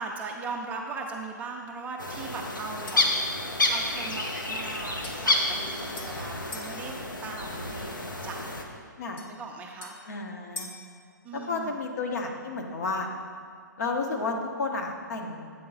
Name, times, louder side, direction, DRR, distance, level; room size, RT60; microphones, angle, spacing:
voice 1, 0.0-3.1 3.7-6.9 7.2-8.7 9.2-9.9 11.2-11.8, right 4 dB, 15° right, 1 dB, 0.4 m, -39 dB
sound 1, 2.0-8.6, left 2 dB, 85° left, 0.9 m, -30 dB
sound 2, 2.9-3.2 5.0-6.8 9.2-10.9, left 2 dB, 20° left, 0.7 m, -44 dB
voice 2, 10.1-10.7 11.3-13.1 13.8-15.5, left 3 dB, 55° left, 2 dB, 1.0 m, -31 dB
8.1 x 3.8 x 5.5 m, 2.2 s
figure-of-eight pair, 130°, 10 cm